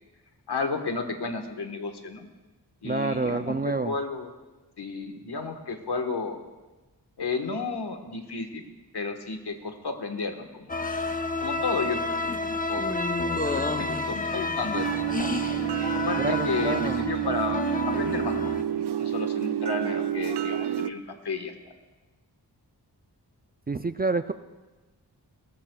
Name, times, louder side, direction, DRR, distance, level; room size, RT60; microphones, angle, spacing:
voice 1, 0.5-2.3 2.8-4.3 4.8-6.4 7.2-8.6 8.9-10.8 11.4-13.1 13.4-14.9 15.9-21.7, left 4 dB, 75° left, 6 dB, 1.5 m, -32 dB
voice 2, 2.8-3.9 16.2-17.0 23.7-24.3, right 3 dB, 25° right, 10 dB, 0.4 m, -28 dB
sound 1, 10.7-18.6, left 3 dB, 20° left, 0.8 m, -30 dB
sound 2, 14.7-20.9, right 12 dB, 80° right, 0.5 m, -29 dB
20.5 x 18.0 x 2.3 m, 1.2 s
wide cardioid pair, 95°, 40 cm